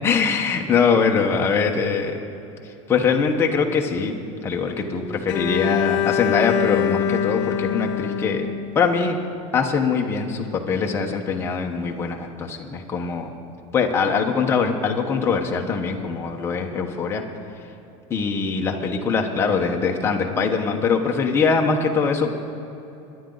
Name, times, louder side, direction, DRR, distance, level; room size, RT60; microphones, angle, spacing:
voice 1, 0.0-2.2 2.9-4.1 4.4-9.2 9.5-13.3 13.7-17.2 18.1-22.3, left 5 dB, 15° left, 1 dB, 1.1 m, -22 dB
Bowed string instrument, 5.3-9.3, left 9 dB, 80° left, 0.9 m, -24 dB
23.0 x 10.5 x 4.0 m, 2.9 s
supercardioid pair, 165°, 15 cm